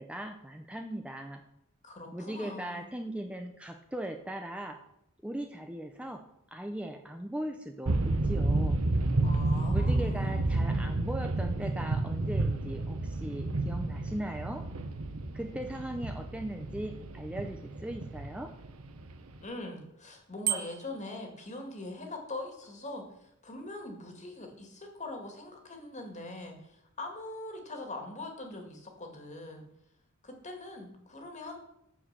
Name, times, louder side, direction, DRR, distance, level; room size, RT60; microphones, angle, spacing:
voice 1, 0.0-1.4 2.1-4.8 5.2-6.2 6.5-8.8 9.7-14.6 15.3-18.5, right 1 dB, 5° right, 4 dB, 0.6 m, -38 dB
voice 2, 1.8-2.8 9.2-10.3 19.4-29.7 30.2-31.6, left 2 dB, 35° left, 3 dB, 2.1 m, -42 dB
sound 1, 7.9-19.4, right 2 dB, 90° right, 1.1 m, -31 dB
Bicycle bell, 20.4-21.1, right 12 dB, 45° right, 1.0 m, -32 dB
8.8 x 7.2 x 6.6 m, 0.81 s
head